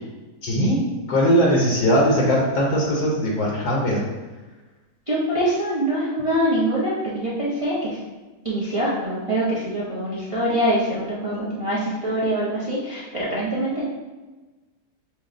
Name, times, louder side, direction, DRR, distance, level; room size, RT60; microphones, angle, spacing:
voice 1, 0.4-0.8 1.1-4.0, equal, 70° left, -3 dB, 1.3 m, -20 dB
voice 2, 5.1-8.0 8.4-13.9, right 1 dB, 35° right, -8 dB, 0.5 m, -24 dB
6.4 x 2.2 x 3.6 m, 1.2 s
omnidirectional pair, 1.8 m